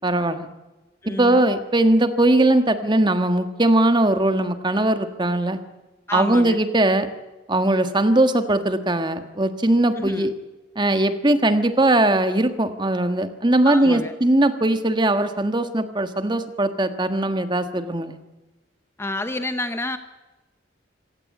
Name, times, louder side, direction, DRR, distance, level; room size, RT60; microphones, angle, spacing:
voice 1, 0.0-0.5 1.2-5.6 6.1-7.1 7.5-10.3 10.7-18.2, right 1 dB, 25° right, 9 dB, 1.5 m, -20 dB
voice 2, 1.0-1.5 6.1-6.6 10.0-10.3 13.6-14.1 19.0-20.0, left 2 dB, 15° left, 9 dB, 0.9 m, -29 dB
26.0 x 16.5 x 8.6 m, 1.1 s
head